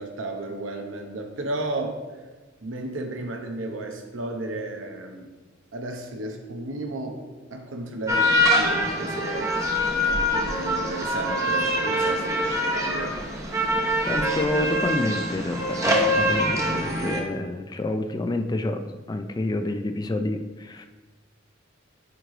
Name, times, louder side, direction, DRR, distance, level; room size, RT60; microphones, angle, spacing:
voice 1, 0.0-2.0 2.6-5.3 5.7-7.2 7.5-9.6 9.9-13.2, right 2 dB, 80° right, 3 dB, 0.9 m, -33 dB
sound 1, 8.1-17.2, equal, 15° right, 0.9 m, -24 dB
voice 2, 14.1-20.9, left 2 dB, 20° left, 7 dB, 0.3 m, -28 dB
9.0 x 3.2 x 3.8 m, 1.3 s
head